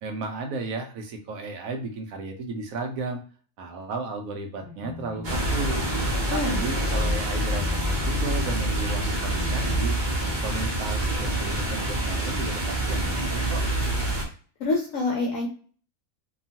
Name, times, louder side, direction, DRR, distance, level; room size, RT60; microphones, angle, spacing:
voice 1, 0.0-3.2 3.6-5.9 6.3-9.9 10.4-13.6, right 3 dB, 70° right, 4 dB, 1.0 m, -34 dB
sound 1, 4.6-6.3 6.6-9.0 9.3-9.9 10.2-10.5, left 3 dB, 25° left, 0.4 m, -42 dB
sound 2, 5.2-14.2, right 1 dB, 40° right, 0.7 m, -26 dB
voice 2, 6.3-6.8 14.6-15.5, left 2 dB, 65° left, 0 dB, 0.9 m, -26 dB
2.9 x 2.3 x 2.7 m, 0.41 s
omnidirectional pair, 1.6 m